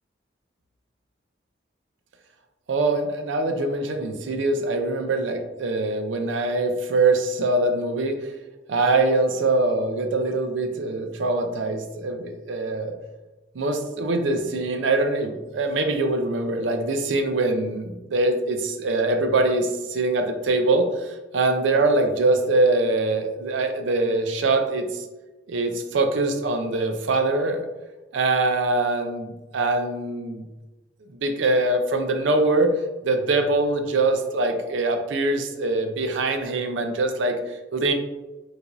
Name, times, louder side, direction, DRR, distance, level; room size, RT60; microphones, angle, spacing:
voice 1, 2.7-8.3 8.7-12.9 13.5-25.1 25.5-27.6 28.1-30.4 31.1-32.7 33.0-37.9, right 2 dB, 85° right, 5 dB, 0.5 m, -23 dB
4.6 x 2.6 x 2.6 m, 1.1 s
head